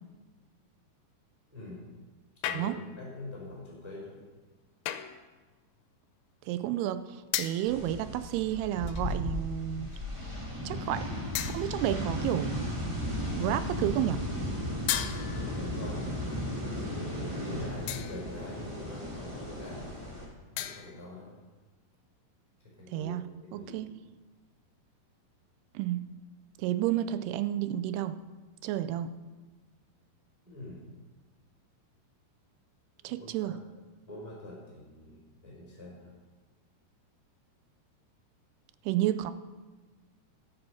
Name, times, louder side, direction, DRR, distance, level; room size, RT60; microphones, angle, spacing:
voice 1, 1.5-1.8 2.4-4.2 15.3-16.2 16.5-20.1 20.5-21.3 22.6-23.2 23.4-23.7 30.4-30.8 33.0-33.6 34.1-36.1, left 2 dB, 5° right, -4 dB, 3.5 m, -44 dB
sound 1, 2.4-3.0 4.9-5.3 7.3-7.8 8.9-9.3 9.9-10.1 11.3-11.9 14.9-15.7 17.9-18.4 20.6-21.1, left 12 dB, 80° left, 2.5 m, -35 dB
voice 2, 6.5-9.9 10.7-11.1 11.4-12.7 13.4-14.2 22.9-23.2 23.5-23.9 25.8-26.0 26.6-28.2 28.6-29.2 33.0-33.6 38.9-39.3, right 12 dB, 85° right, 12 dB, 2.4 m, -31 dB
sound 2, 7.7-20.2, equal, 55° right, 0.3 m, -35 dB
13.0 x 7.7 x 5.8 m, 1.2 s
omnidirectional pair, 4.8 m